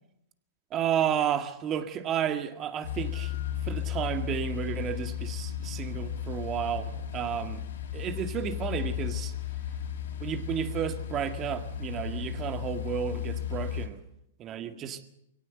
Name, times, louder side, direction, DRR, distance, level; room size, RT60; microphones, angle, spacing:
voice 1, 0.7-7.6 7.9-9.3 10.2-14.0 14.4-15.0, right 9 dB, 30° right, 1.9 m, -32 dB
sound 1, 2.8-13.9, left 10 dB, 70° left, 5.1 m, -34 dB
23.0 x 17.0 x 7.9 m
hypercardioid pair, 130°, 0 cm